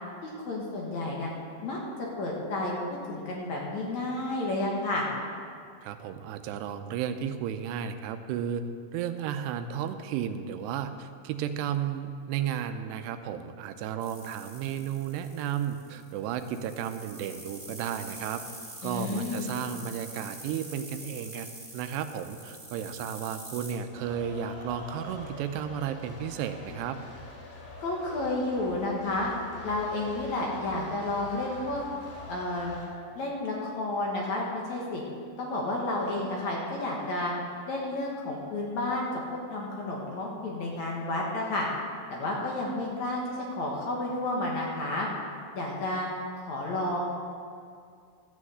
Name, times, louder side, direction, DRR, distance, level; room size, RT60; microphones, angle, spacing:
voice 1, 0.2-1.3 1.6-1.8 2.2-2.7 3.1-5.1 18.8-19.5 27.8-29.3 29.6-31.8 32.3-32.7 33.2-35.0 35.4-37.3 37.7-39.2 39.5-41.7 42.1-43.2 43.5-45.1 45.5-46.1 46.5-47.0, left 2 dB, 60° left, -2 dB, 2.1 m, -31 dB
voice 2, 5.8-8.6 8.9-18.4 18.8-21.5 21.7-27.0, right 9 dB, 80° right, 9 dB, 2.7 m, -33 dB
sound 1, 14.0-23.7, right 1 dB, 5° right, 2.8 m, -45 dB
sound 2, 23.9-32.9, left 2 dB, 85° left, 4.5 m, -45 dB
13.0 x 6.4 x 7.9 m, 2.2 s
omnidirectional pair, 4.9 m